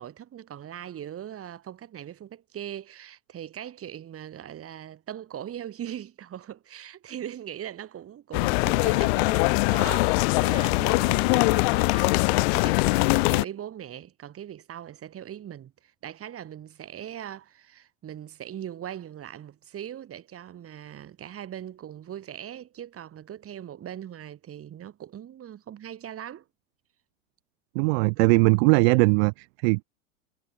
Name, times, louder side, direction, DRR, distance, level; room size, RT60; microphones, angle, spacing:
voice 1, 0.0-26.5, right 10 dB, 35° right, 7.6 m, -40 dB
sound 1, 8.3-13.4, left 29 dB, 50° left, 0.6 m, -22 dB
voice 2, 27.7-29.8, right 31 dB, 50° right, 0.7 m, -20 dB
hypercardioid pair, 90°, 41 cm